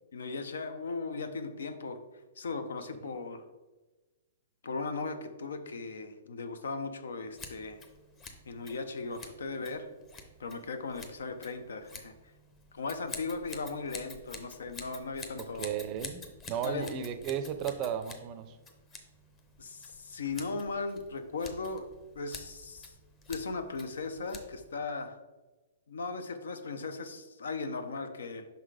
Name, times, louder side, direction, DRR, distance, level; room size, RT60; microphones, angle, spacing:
voice 1, 0.1-2.0 2.4-3.4 4.6-7.8 8.5-9.9 10.4-12.1 12.7-15.7 16.6-16.9 19.6-21.9 22.2-22.9 23.3-25.2 25.9-28.5, left 4 dB, 90° left, 8 dB, 0.7 m, -37 dB
Scissors, 7.3-24.8, left 3 dB, 20° left, 0.7 m, -49 dB
voice 2, 15.4-18.6, right 8 dB, 30° right, 10 dB, 0.4 m, -35 dB
5.6 x 4.0 x 4.8 m, 1.2 s
hypercardioid pair, 155°, 0 cm